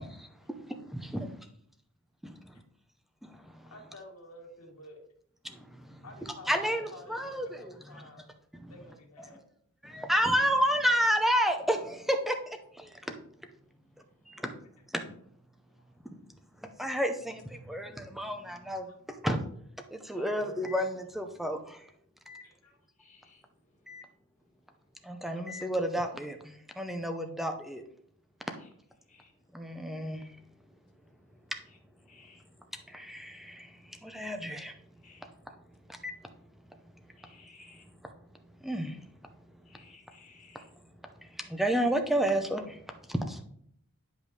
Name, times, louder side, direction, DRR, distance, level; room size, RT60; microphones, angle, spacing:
voice 1, 0.0-1.3 2.2-2.3 3.2-3.7 5.4-8.1 8.5-8.7 9.2-9.4 9.8-13.2 14.3-14.6 14.9-15.0 16.0-16.1 16.6-19.4 19.9-21.9 22.3-22.4 23.9-24.1 25.0-27.8 29.5-30.4 32.9-34.8 35.2-35.3 35.9-36.5 36.8-38.1 38.6-39.1 39.7-39.8 41.2-43.4, equal, ahead, 0.7 m, -32 dB
voice 2, 3.7-5.1 6.0-8.3 8.7-9.4 14.3-14.4 15.8-15.9 18.4-18.6 18.8-18.9 20.1-20.8 22.4-22.8 25.3-25.4, left 1 dB, 90° left, 2.2 m, -50 dB
voice 3, 23.0-23.5 23.7-24.0 28.6-28.7 29.1-29.3 29.6-29.8 31.2-31.8 32.0-32.7 35.0-35.3 37.2-37.8 39.6-40.7, left 5 dB, 35° left, 1.6 m, -60 dB
10.5 x 5.2 x 3.3 m
head